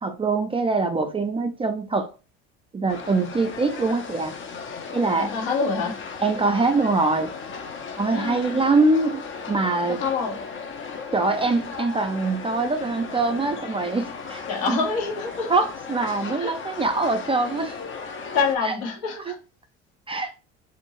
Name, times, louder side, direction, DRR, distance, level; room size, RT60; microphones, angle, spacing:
voice 1, 0.0-2.1 2.7-4.3 4.9-5.3 6.2-7.3 8.0-10.0 11.1-14.4 14.7-14.8 15.5-17.8 18.7-18.8 20.1-20.3, right 3 dB, 15° right, 0.4 m, -23 dB
sound 1, 2.9-18.6, left 5 dB, 40° left, 0.6 m, -36 dB
voice 2, 5.2-6.0 8.1-8.6 9.9-10.4 14.5-15.7 16.4-16.6 18.3-19.4, left 5 dB, 70° left, 1.0 m, -27 dB
2.6 x 2.6 x 2.9 m
hypercardioid pair, 65°, 32 cm